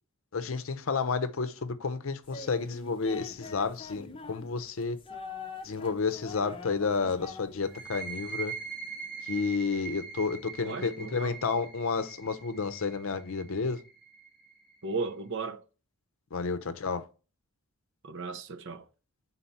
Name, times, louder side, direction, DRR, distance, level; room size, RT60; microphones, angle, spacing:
voice 1, 0.3-5.0 5.6-8.5 9.3-13.8 16.3-17.0, left 4 dB, 65° left, 0.6 m, -31 dB
sound 1, 2.2-7.9, left 4 dB, 25° left, 0.7 m, -44 dB
sound 2, 7.6-15.0, right 5 dB, ahead, 2.1 m, -42 dB
voice 2, 10.6-11.4 14.8-15.6 18.0-18.9, right 4 dB, 55° right, 0.6 m, -35 dB
5.7 x 4.1 x 4.1 m
head